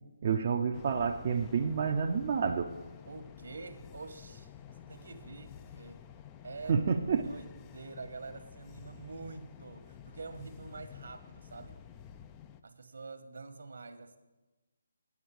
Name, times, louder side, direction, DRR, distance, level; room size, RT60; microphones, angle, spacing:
voice 1, 0.2-2.7 6.7-7.3, right 6 dB, 40° right, 1 dB, 0.6 m, -29 dB
sound 1, 0.7-12.6, left 8 dB, 20° left, 0.4 m, -51 dB
voice 2, 3.1-6.0 6.4-6.8 7.2-11.8 12.6-14.2, right 4 dB, 70° right, 8 dB, 1.2 m, -46 dB
9.5 x 6.9 x 8.4 m, 1.1 s
figure-of-eight pair, 150°, 0 cm